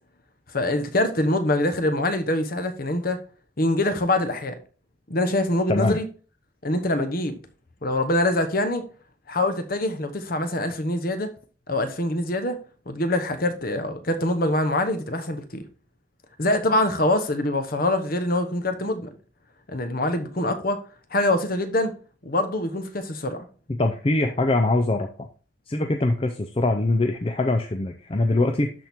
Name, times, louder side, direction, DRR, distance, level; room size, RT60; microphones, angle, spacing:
voice 1, 0.5-3.2 3.6-4.5 5.1-6.0 6.6-7.4 7.8-8.8 9.3-11.3 11.7-12.6 12.9-15.6 16.4-19.1 19.7-20.8 21.1-21.9 22.2-23.4, left 1 dB, 45° left, 1.1 m, -24 dB
voice 2, 5.7-6.0 23.7-25.3 25.7-28.7, left 2 dB, 30° left, 0.5 m, -23 dB
12.0 x 4.4 x 3.6 m
head